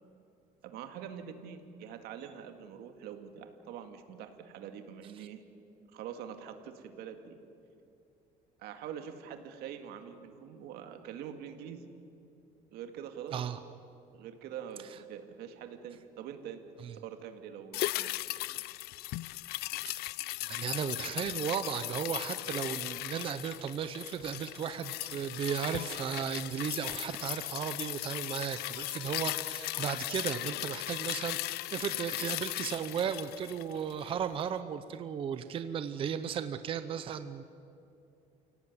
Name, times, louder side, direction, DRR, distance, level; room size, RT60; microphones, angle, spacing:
voice 1, 0.6-5.4 5.9-7.4 8.6-11.9 12.7-13.4 14.1-16.6 16.9-18.3, right 8 dB, 90° right, 7 dB, 2.2 m, -44 dB
sound 1, 17.7-34.2 34.5-34.6, left 19 dB, 85° left, 0.5 m, -37 dB
voice 2, 20.4-37.4, right 8 dB, 35° right, 11 dB, 0.8 m, -35 dB
29.5 x 17.0 x 9.6 m, 2.7 s
cardioid pair, 175°, 16 cm